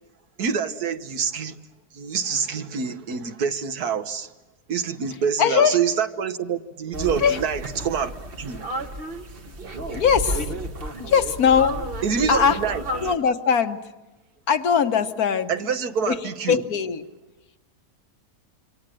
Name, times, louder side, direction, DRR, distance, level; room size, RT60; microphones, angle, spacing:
voice 1, 0.4-1.6 1.9-4.3 4.7-8.6 12.0-12.8 15.5-16.6, right 6 dB, 65° right, 1.6 m, -26 dB
voice 2, 5.4-5.8 7.2-7.4 9.9-10.5 11.0-11.8 12.3-12.6 13.0-13.8 14.5-15.5 16.1-16.2 16.5-17.1, left 7 dB, 60° left, 1.4 m, -20 dB
sound 1, 6.9-13.2, right 1 dB, 35° right, 1.5 m, -32 dB
26.5 x 25.0 x 7.6 m
omnidirectional pair, 1.8 m